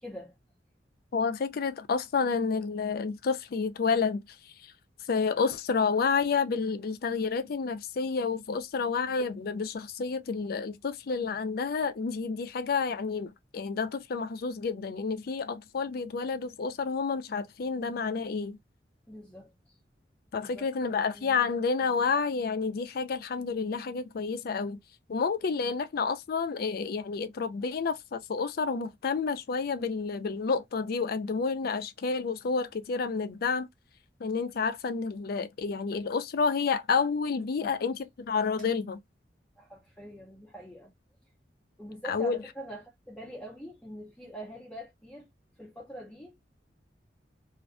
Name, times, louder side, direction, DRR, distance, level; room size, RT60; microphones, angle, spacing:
voice 1, 0.0-0.3 19.1-19.8 20.3-20.7 21.1-21.4 37.6-37.7 39.6-40.9 41.8-45.3 45.6-46.4, equal, 5° left, 0.6 m, -44 dB
voice 2, 1.1-4.2 4.6-4.7 5.1-18.6 20.3-24.8 25.1-33.7 34.2-39.0 42.1-42.4, left 5 dB, 55° left, 0.4 m, -30 dB
2.5 x 2.2 x 2.4 m
head